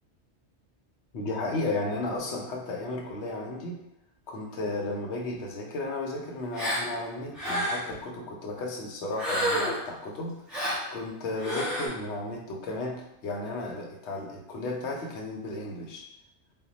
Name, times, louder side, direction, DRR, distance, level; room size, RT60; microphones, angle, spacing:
voice 1, 1.1-3.8 4.3-10.4 10.9-16.0, left 2 dB, 75° left, -1 dB, 0.9 m, -34 dB
Gasp, 6.5-6.9 7.3-7.9 9.2-9.9 10.5-10.8 11.4-11.9, equal, ahead, 0.6 m, -29 dB
2.2 x 2.1 x 3.8 m, 0.83 s
omnidirectional pair, 1.2 m